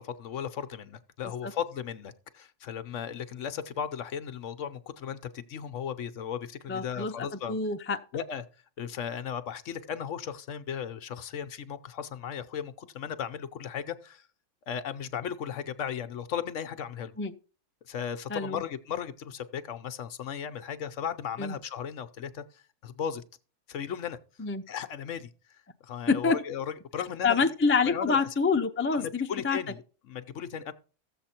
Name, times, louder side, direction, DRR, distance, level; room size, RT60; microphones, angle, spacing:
voice 1, 0.0-7.6 8.1-8.5 8.8-14.3 14.7-17.1 17.8-23.2 23.7-24.2 24.7-27.5 27.8-28.3 28.9-30.7, left 8 dB, 60° left, 1.0 m, -36 dB
voice 2, 6.7-7.1 7.5-8.0 17.2-17.3 18.3-18.6 21.4-21.5 24.4-24.6 26.1-26.4 27.2-29.6, left 4 dB, 20° left, 0.3 m, -26 dB
14.5 x 7.6 x 4.4 m
omnidirectional pair, 1.5 m